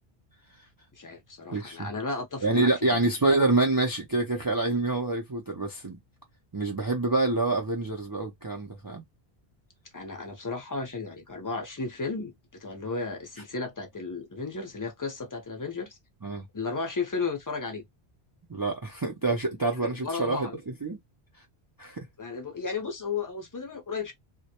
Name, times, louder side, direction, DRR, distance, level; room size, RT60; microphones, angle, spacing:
voice 1, 1.0-3.0 9.9-12.3 12.6-16.0 16.5-17.8 19.8-20.6 22.2-24.1, left 4 dB, 25° left, 0.5 m, -34 dB
voice 2, 1.5-1.9 2.4-6.0 6.5-9.0 16.2-16.5 18.5-21.0 21.8-22.0, right 2 dB, 35° right, 0.3 m, -27 dB
2.2 x 2.0 x 2.8 m
omnidirectional pair, 1.1 m